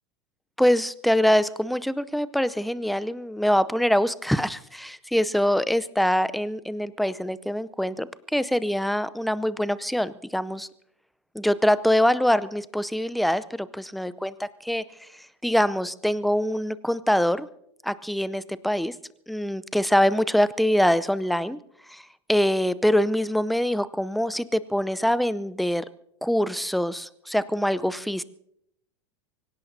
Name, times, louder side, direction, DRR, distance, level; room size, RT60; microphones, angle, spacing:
voice 1, 0.6-10.7 11.3-14.8 15.4-17.5 17.8-18.9 19.3-21.6 21.9-22.0 22.3-25.8 26.2-28.2, equal, ahead, 16 dB, 0.6 m, -24 dB
25.0 x 17.0 x 2.8 m, 0.74 s
hypercardioid pair, 90°, 15 cm